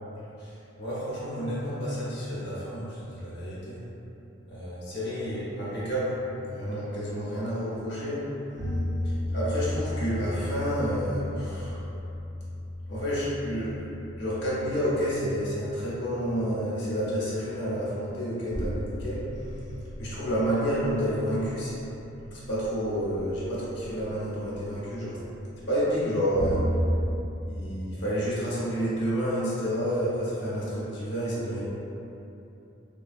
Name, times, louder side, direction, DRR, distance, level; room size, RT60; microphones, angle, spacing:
voice 1, 0.4-3.8 4.5-6.2 6.4-8.3 9.0-11.8 12.9-19.7 20.0-21.7 22.3-25.2 25.7-26.7 27.4-31.6, equal, 60° left, -9 dB, 1.0 m, -30 dB
sound 1, 8.6-27.2, equal, 25° right, 0.7 m, -35 dB
3.7 x 2.3 x 2.4 m, 2.9 s
head